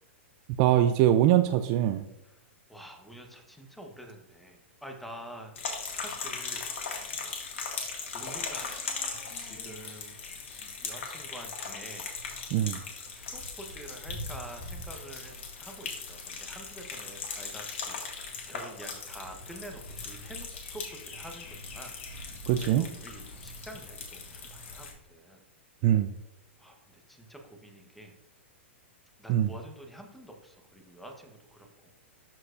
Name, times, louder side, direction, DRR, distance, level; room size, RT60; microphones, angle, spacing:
voice 1, 0.6-2.0 12.5-12.8 22.5-22.9 25.8-26.1 29.3-29.5, right 12 dB, 40° right, 10 dB, 0.3 m, -23 dB
voice 2, 2.7-5.6 5.9-7.3 8.0-8.9 9.4-10.4 10.8-12.1 13.2-21.9 22.2-25.4 26.6-28.1 29.2-31.7, right 1 dB, ahead, 3 dB, 1.0 m, -47 dB
sound 1, 5.6-24.9, left 4 dB, 75° left, 2.0 m, -39 dB
13.0 x 4.5 x 2.5 m, 0.85 s
hypercardioid pair, 130°, 7 cm